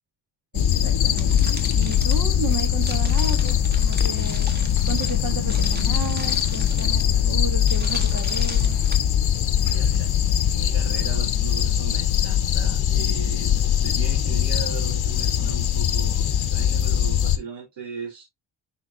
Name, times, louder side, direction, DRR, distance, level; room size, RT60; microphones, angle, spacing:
sound 1, 0.5-17.4, left 9 dB, 65° left, 0.9 m, -21 dB
voice 1, 0.5-4.5 4.8-8.8, right 4 dB, 45° right, 1.7 m, -33 dB
sound 2, 1.2-9.0, right 2 dB, 25° right, 1.6 m, -39 dB
voice 2, 9.7-10.1 10.4-13.5 13.8-18.2, right 6 dB, 90° right, 2.9 m, -37 dB
11.0 x 4.5 x 2.6 m
wide cardioid pair, 150°, 42 cm